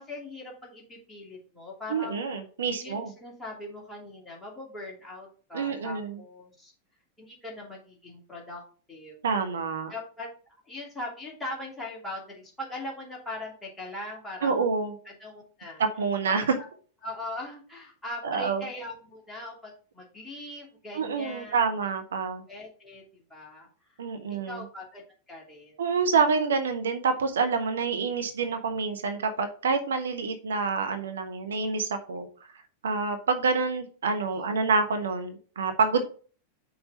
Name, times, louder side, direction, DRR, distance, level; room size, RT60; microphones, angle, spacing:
voice 1, 0.0-2.3 2.8-6.7 7.2-8.6 8.9-9.2 9.9-10.3 10.7-14.7 15.0-15.8 16.5-16.7 17.0-21.6 22.5-24.0 24.3-25.8 34.3-34.7, left 2 dB, 10° left, -3 dB, 2.6 m, -40 dB
voice 2, 1.9-3.1 5.5-6.2 9.2-9.9 14.4-14.9 16.0-16.4 18.2-18.6 20.9-22.4 24.0-24.6 25.8-32.3 32.8-36.0, right 5 dB, 65° right, 7 dB, 0.8 m, -27 dB
5.7 x 4.2 x 5.2 m, 0.41 s
figure-of-eight pair, 90°, 0 cm